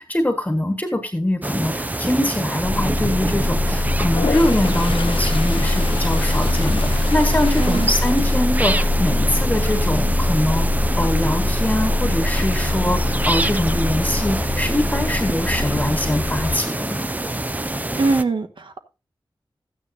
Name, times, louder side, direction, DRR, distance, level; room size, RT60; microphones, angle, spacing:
voice 1, 0.0-17.1, left 1 dB, 15° left, 1.5 m, -23 dB
sound 1, 1.4-18.2, right 1 dB, 20° right, 0.6 m, -26 dB
sound 2, 2.6-16.6, left 2 dB, 30° left, 0.9 m, -22 dB
Toilet flush, 4.1-9.2 9.6-10.0 14.5-14.6 14.9-15.6, left 5 dB, 90° left, 0.9 m, -32 dB
voice 2, 7.6-7.9 18.0-18.8, right 3 dB, 65° right, 1.2 m, -22 dB
13.5 x 9.2 x 2.7 m
wide cardioid pair, 100°, 9 cm